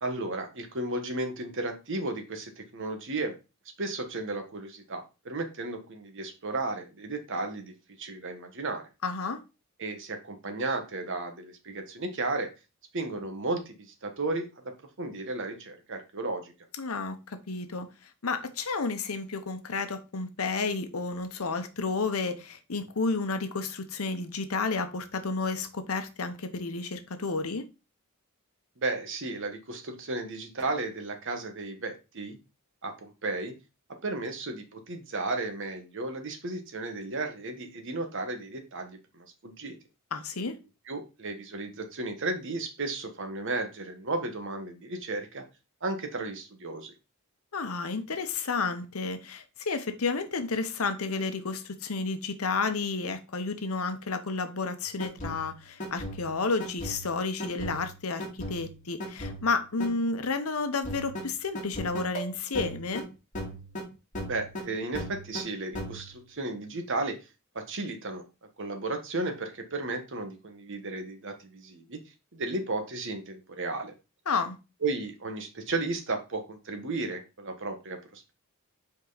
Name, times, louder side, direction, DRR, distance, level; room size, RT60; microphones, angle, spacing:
voice 1, 0.0-3.3 3.8-7.7 8.0-8.8 9.8-12.5 12.9-14.5 15.0-16.5 28.8-32.4 32.8-33.5 34.0-39.8 40.9-45.4 45.8-46.9 64.2-67.2 67.5-68.2 68.6-72.0 72.3-73.9 74.8-78.3, right 2 dB, 60° right, 1.3 m, -34 dB
voice 2, 9.0-9.4 16.8-27.7 40.1-40.6 47.5-63.0 74.3-74.6, left 4 dB, 75° left, 0.9 m, -31 dB
sound 1, 54.8-59.9 60.8-63.1 63.3-63.9 64.1-64.7 64.9-65.5 65.7-66.3, equal, 35° left, 2.3 m, -38 dB
5.4 x 4.7 x 3.9 m
head